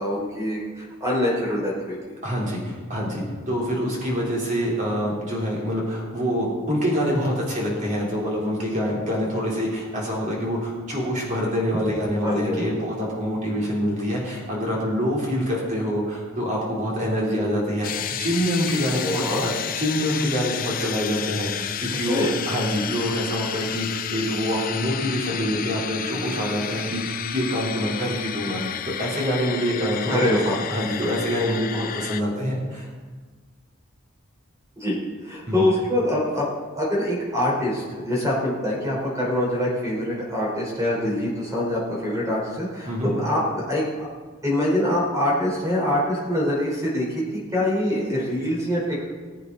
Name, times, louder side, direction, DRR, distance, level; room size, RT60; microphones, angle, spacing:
voice 1, 0.0-2.0 12.2-12.7 17.3-17.5 19.0-19.5 22.1-22.3 30.1-30.6 34.8-35.0 35.2-36.5 36.8-43.8 44.4-49.1, left 1 dB, 15° right, -5 dB, 4.5 m, -24 dB
voice 2, 2.2-30.4 30.7-32.9 35.5-35.7 42.9-43.1, equal, 35° right, -4 dB, 3.9 m, -26 dB
sound 1, 17.8-32.2, left 9 dB, 40° left, 0.5 m, -31 dB
20.5 x 8.2 x 4.2 m, 1.4 s
head